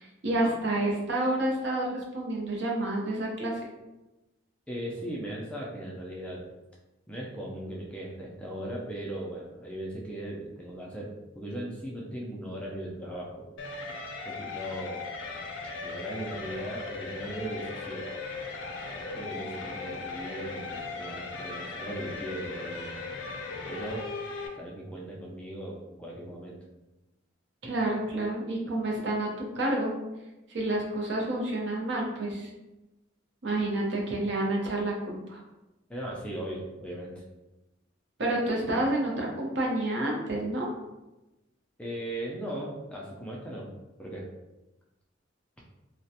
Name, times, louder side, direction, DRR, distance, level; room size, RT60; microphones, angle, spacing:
voice 1, 0.0-3.6 27.6-29.3 29.6-29.9 30.5-32.5 33.4-35.4 38.2-40.7, right 1 dB, 60° right, -2 dB, 0.6 m, -29 dB
voice 2, 4.7-6.4 7.1-13.5 14.3-15.0 15.8-18.1 19.1-23.0 23.7-24.1 24.6-26.6 35.9-37.2 41.8-43.7 44.0-44.3, right 1 dB, 5° left, -4 dB, 0.3 m, -38 dB
sound 1, 13.6-24.5, left 3 dB, 75° left, 0.4 m, -38 dB
2.4 x 2.1 x 2.7 m, 1.0 s
head